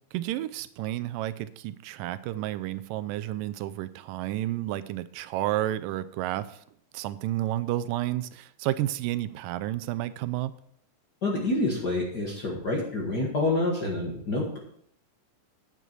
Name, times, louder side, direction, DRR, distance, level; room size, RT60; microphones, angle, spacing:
voice 1, 0.1-6.6 6.9-10.5, right 14 dB, 85° right, 13 dB, 2.2 m, -31 dB
voice 2, 11.2-14.6, left 2 dB, 40° left, -2 dB, 1.5 m, -27 dB
9.1 x 8.3 x 4.6 m, 0.67 s
omnidirectional pair, 3.9 m